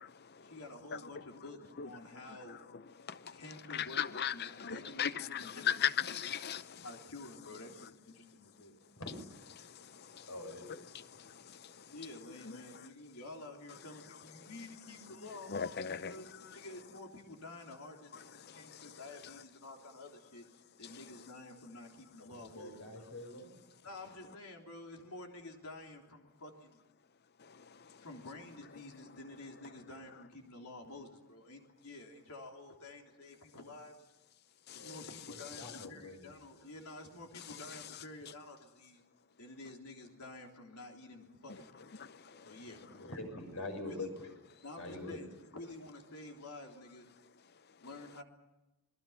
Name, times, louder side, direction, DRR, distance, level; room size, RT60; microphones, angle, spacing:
voice 1, 0.4-2.6 3.3-6.1 6.8-9.0 11.9-15.5 16.0-20.4 20.8-23.1 23.8-26.8 28.0-34.0 34.7-39.0 39.4-41.9 42.5-43.1 43.7-44.1 44.6-47.1 47.8-48.2, left 2 dB, 85° left, 3.6 m, -50 dB
voice 2, 3.0-3.4 3.7-6.8 9.6-10.3 10.6-11.9 12.5-12.6 15.5-16.2 18.4-18.9 27.4-28.0 34.7-34.9 42.0-42.6, left 8 dB, 45° left, 0.7 m, -38 dB
voice 3, 9.0-9.8 10.1-11.3 22.2-23.5 34.8-36.2 42.3-44.3 44.8-45.2, left 2 dB, 65° left, 6.8 m, -46 dB
27.5 x 21.5 x 5.8 m
head